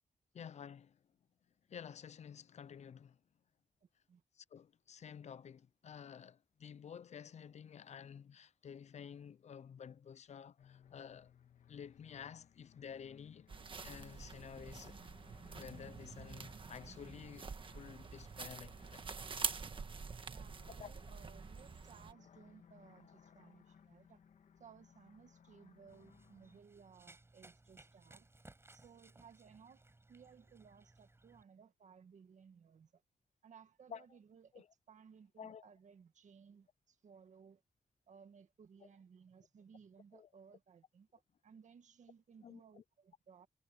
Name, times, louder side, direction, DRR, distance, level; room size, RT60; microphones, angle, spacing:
voice 1, 0.3-1.0 1.7-3.2 4.4-11.3 11.7-13.5 13.8-15.0 15.5-19.1 20.8-20.9 33.9-34.1 34.5-34.7 35.4-35.7 40.1-40.3 42.4-42.8, left 7 dB, 60° left, 0.5 m, -51 dB
sound 1, 10.6-26.6, left 8 dB, 75° left, 1.8 m, -64 dB
sound 2, 13.5-22.1, right 4 dB, 40° right, 1.5 m, -46 dB
voice 2, 20.3-24.2 24.6-28.3 28.7-33.0 33.4-37.6 38.1-43.5, right 6 dB, 70° right, 1.9 m, -61 dB
Run, 25.9-31.4, right 2 dB, 20° right, 5.7 m, -62 dB
wide cardioid pair, 120°, 13 cm